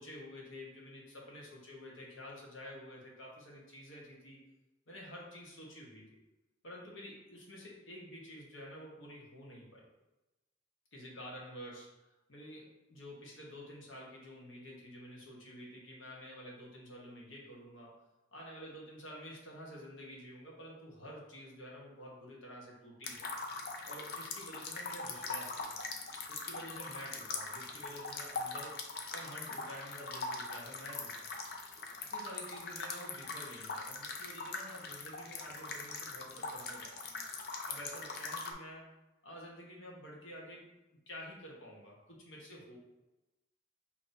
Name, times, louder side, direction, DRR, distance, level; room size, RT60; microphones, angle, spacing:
voice 1, 0.0-4.4 4.9-6.0 6.6-9.9 10.9-18.0 18.3-23.3 23.9-25.9 26.3-28.8 29.1-31.3 31.7-37.0 37.7-38.9 39.2-40.7 41.1-42.8, equal, 75° left, -3 dB, 1.1 m, -49 dB
sound 1, 23.0-38.5, left 3 dB, 50° left, 0.5 m, -42 dB
5.5 x 2.9 x 2.6 m, 1.0 s
head